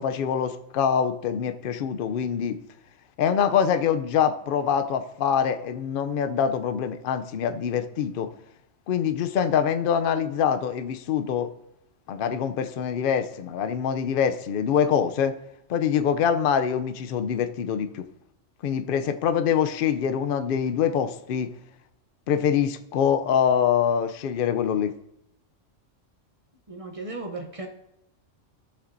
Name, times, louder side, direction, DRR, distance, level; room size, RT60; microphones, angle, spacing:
voice 1, 0.0-2.6 3.2-8.3 8.9-11.5 12.1-15.3 15.7-18.1 18.6-21.5 22.3-24.9, left 8 dB, 60° left, 10 dB, 0.6 m, -24 dB
voice 2, 26.7-27.7, right 2 dB, 35° right, 2 dB, 0.7 m, -35 dB
14.0 x 6.7 x 2.6 m, 0.80 s
omnidirectional pair, 1.3 m